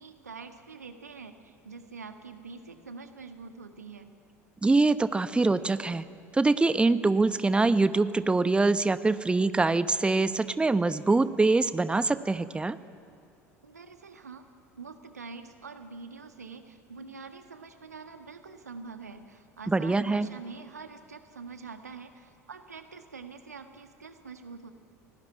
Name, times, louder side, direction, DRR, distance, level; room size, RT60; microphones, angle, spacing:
voice 1, 0.0-4.0 13.6-14.4 14.8-24.7, right 4 dB, 80° right, 8 dB, 1.6 m, -45 dB
voice 2, 4.6-6.0 6.3-12.8 19.7-20.3, right 3 dB, 10° right, 14 dB, 1.0 m, -24 dB
30.0 x 19.0 x 9.6 m, 2.4 s
figure-of-eight pair, 70°, 9 cm